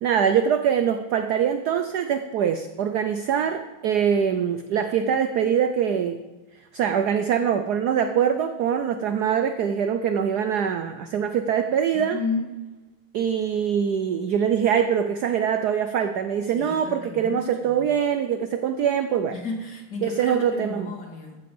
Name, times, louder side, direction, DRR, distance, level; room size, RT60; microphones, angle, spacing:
voice 1, 0.0-6.2 6.7-12.2 13.1-19.4 20.0-20.9, right 8 dB, 85° right, 9 dB, 0.8 m, -23 dB
voice 2, 12.1-12.4 16.6-17.4 17.6-17.8 19.4-21.4, left 4 dB, 50° left, 0 dB, 2.6 m, -32 dB
14.0 x 7.6 x 5.4 m, 1.2 s
omnidirectional pair, 2.4 m